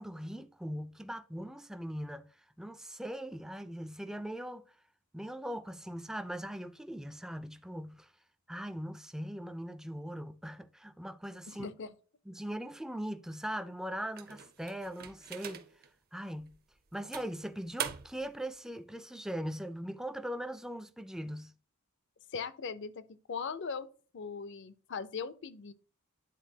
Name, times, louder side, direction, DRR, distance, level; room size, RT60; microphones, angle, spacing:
voice 1, 0.0-4.7 5.1-8.1 8.5-11.7 12.3-15.7 16.1-16.6 16.9-21.5, equal, 5° right, 0.4 m, -40 dB
voice 2, 11.5-11.9 22.3-23.9 24.1-25.7, left 5 dB, 55° left, 0.5 m, -39 dB
sound 1, 14.1-15.9 16.4-16.5 17.1-18.3, right 9 dB, 45° right, 0.6 m, -42 dB
9.2 x 3.9 x 2.8 m
head